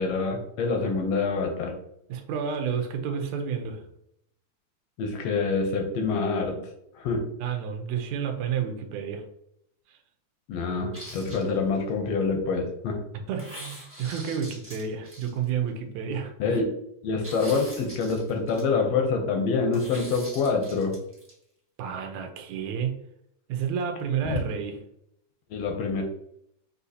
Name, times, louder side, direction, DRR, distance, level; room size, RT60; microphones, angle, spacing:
voice 1, 0.0-1.7 5.0-6.6 6.9-7.3 10.5-13.0 16.4-16.8 17.0-20.9 24.3-24.4 25.5-26.0, left 4 dB, 75° left, 3 dB, 1.6 m, -26 dB
voice 2, 2.1-3.8 7.4-9.2 9.9-10.0 13.1-16.6 21.8-22.9 23.5-24.8, right 7 dB, 80° right, 5 dB, 1.9 m, -30 dB
sound 1, 10.9-11.9 13.4-15.7 17.2-18.6 19.7-21.3, equal, 15° right, 0.4 m, -43 dB
6.2 x 2.7 x 2.7 m, 0.75 s
omnidirectional pair, 3.4 m